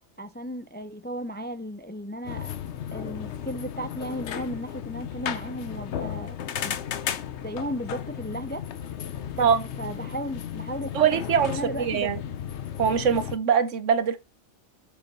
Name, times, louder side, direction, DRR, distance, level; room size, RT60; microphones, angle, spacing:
voice 1, 0.2-2.5 2.9-6.4 6.6-6.8 7.4-8.6 9.4-10.9 11.5-12.1, equal, 15° left, 0.4 m, -35 dB
sound 1, 2.3-13.4, left 9 dB, 70° left, 1.0 m, -34 dB
voice 2, 10.9-12.2 12.8-14.2, right 7 dB, 85° right, 1.3 m, -23 dB
6.9 x 6.7 x 4.1 m
omnidirectional pair, 1.2 m